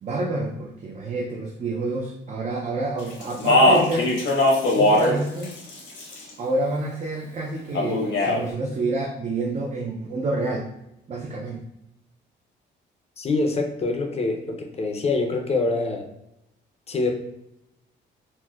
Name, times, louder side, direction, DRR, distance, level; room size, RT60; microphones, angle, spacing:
voice 1, 0.0-4.1 4.7-5.5 6.4-10.7 11.1-11.6, right 2 dB, 35° right, -1 dB, 0.4 m, -28 dB
Speech, 3.2-5.2 5.4-6.3 7.7-8.4, left 1 dB, 75° left, 0.9 m, -19 dB
voice 2, 13.2-16.1 16.9-17.1, left 3 dB, 30° left, 3 dB, 0.5 m, -25 dB
4.2 x 2.1 x 2.3 m, 0.86 s
cardioid pair, 90°, 20 cm